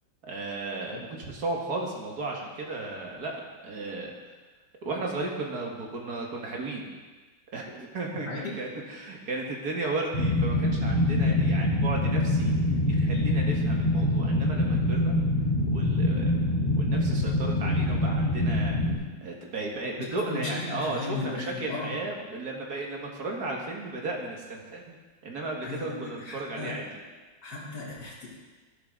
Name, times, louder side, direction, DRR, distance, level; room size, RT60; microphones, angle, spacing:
voice 1, 0.2-4.1 4.8-6.9 7.5-12.5 12.9-15.1 15.7-16.4 16.8-18.8 19.2-25.0 25.2-27.0, right 2 dB, 50° right, -1 dB, 2.2 m, -34 dB
sound 1, 10.1-18.9, left 1 dB, 20° left, 3.9 m, -25 dB
voice 2, 20.1-22.0 25.6-26.7 27.4-28.3, left 3 dB, 55° left, -6 dB, 3.6 m, -36 dB
12.5 x 12.0 x 3.8 m, 1.3 s
omnidirectional pair, 2.2 m